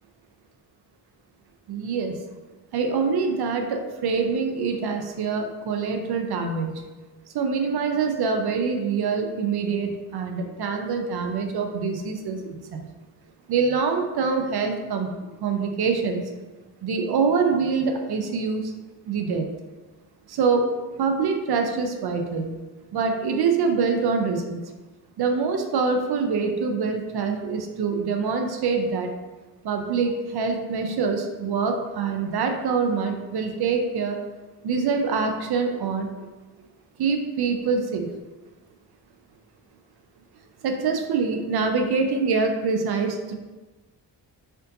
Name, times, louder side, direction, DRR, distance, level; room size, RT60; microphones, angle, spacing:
voice 1, 1.7-2.2 2.7-6.7 7.3-12.8 13.5-16.3 16.8-18.7 19.1-19.5 20.3-20.7 21.0-22.5 22.9-24.6 25.2-29.1 29.6-34.2 34.6-36.1 37.0-38.1 40.6-43.3, right 5 dB, 60° right, 4 dB, 0.5 m, -25 dB
4.4 x 2.5 x 2.6 m, 1.2 s
wide cardioid pair, 150°, 44 cm